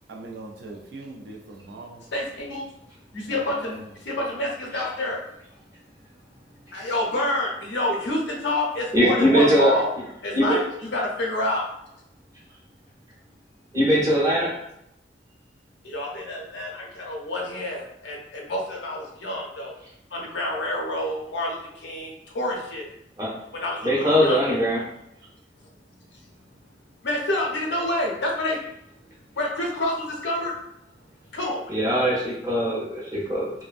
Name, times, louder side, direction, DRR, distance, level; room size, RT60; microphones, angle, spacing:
voice 1, 0.1-2.1 3.2-3.9, right 2 dB, 65° right, 2 dB, 0.4 m, -40 dB
voice 2, 2.1-2.6 3.1-3.8 4.0-5.2 6.7-9.9 10.2-11.6 15.8-19.7 20.1-22.9 23.5-24.6 27.0-28.6 29.3-30.5 31.3-31.8, left 1 dB, 75° left, -1 dB, 0.6 m, -28 dB
voice 3, 8.9-10.0 10.3-10.6 13.7-14.5 23.2-23.3 23.8-24.8 31.7-33.5, equal, 20° right, -5 dB, 0.7 m, -21 dB
2.5 x 2.1 x 2.4 m, 0.79 s
head